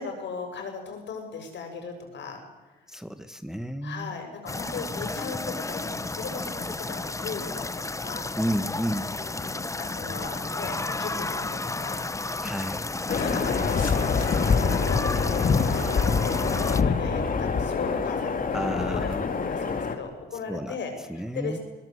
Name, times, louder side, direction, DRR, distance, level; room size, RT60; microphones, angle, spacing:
voice 1, 0.0-2.4 3.8-8.3 9.2-12.1 13.2-18.6 18.9-21.6, left 5 dB, 65° left, 4 dB, 7.1 m, -37 dB
voice 2, 2.9-4.1 8.4-9.1 12.4-12.9 18.5-19.2 20.5-20.8 21.1-21.6, equal, 5° right, 9 dB, 1.4 m, -31 dB
sound 1, 4.4-16.8, left 3 dB, 15° left, 0.9 m, -32 dB
sound 2, 13.1-19.9, left 5 dB, 45° left, 2.8 m, -25 dB
22.5 x 20.0 x 8.0 m, 1.2 s
cardioid pair, 90°, 20 cm